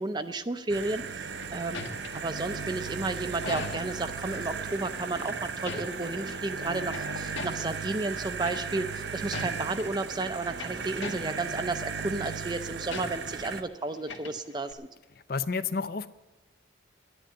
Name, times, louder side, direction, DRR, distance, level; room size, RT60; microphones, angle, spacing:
voice 1, 0.0-1.8 2.1-14.9, right 2 dB, 25° right, 9 dB, 0.5 m, -32 dB
sound 1, 0.7-13.6, right 5 dB, 60° right, 0.7 m, -36 dB
sound 2, 1.1-4.1 5.0-6.4 6.7-7.9 8.4-8.9 9.2-9.9 10.3-11.7 12.0-12.3 12.9-13.7 13.9-14.7, left 3 dB, 75° left, 1.4 m, -41 dB
voice 2, 15.3-16.1, left 4 dB, 50° left, 13 dB, 0.5 m, -30 dB
10.5 x 10.0 x 8.8 m, 1.1 s
head